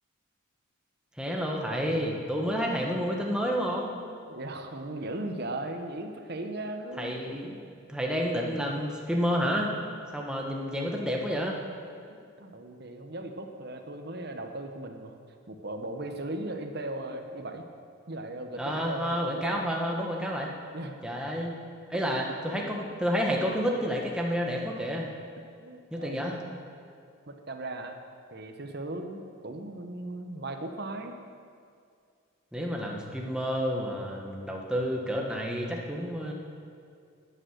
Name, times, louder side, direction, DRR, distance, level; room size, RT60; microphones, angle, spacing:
voice 1, 1.2-3.9 7.0-7.6 7.9-9.7 10.1-11.6 18.6-20.5 21.0-21.5 21.9-25.1 25.9-26.4 32.5-36.3, equal, 5° right, -1 dB, 1.4 m, -30 dB
voice 2, 4.3-7.2 12.4-15.2 15.5-17.6 18.1-19.7 20.7-21.0 22.5-22.8 25.6-26.4 27.3-28.0 28.3-31.2, right 2 dB, 50° right, 5 dB, 1.1 m, -37 dB
12.5 x 9.0 x 6.6 m, 2.4 s
head